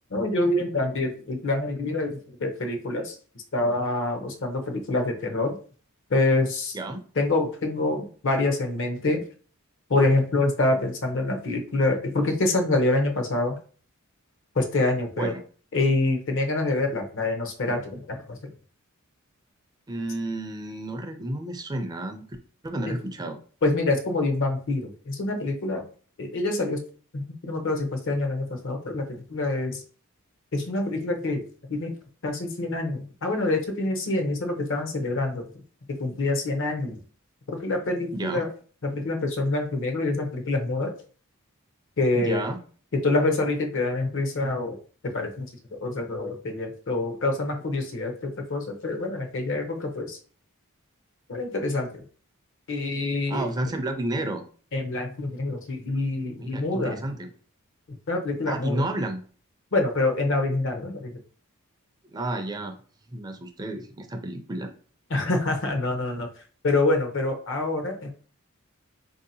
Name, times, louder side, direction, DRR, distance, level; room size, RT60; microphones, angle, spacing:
voice 1, 0.1-3.2 3.5-5.5 6.1-6.8 7.2-9.2 9.9-13.6 14.6-15.3 15.7-18.0 18.3-18.4 23.6-25.8 26.2-26.8 27.1-29.8 30.5-31.4 31.7-31.9 32.2-35.4 36.0-37.0 37.5-38.5 38.8-40.9 42.0-42.4 43.0-44.8 45.1-45.4 45.7-50.2 51.3-52.0 52.7-53.4 54.7-56.9 58.1-58.8 59.7-61.1 65.1-66.3 66.6-68.1, left 2 dB, 60° left, 5 dB, 0.7 m, -26 dB
voice 2, 19.9-22.3 22.6-23.4 38.1-38.4 42.1-42.6 53.3-54.4 56.5-57.3 58.5-59.2 62.1-62.8 63.1-64.7, right 1 dB, 20° right, 5 dB, 0.4 m, -31 dB
4.0 x 2.7 x 2.7 m, 0.41 s
head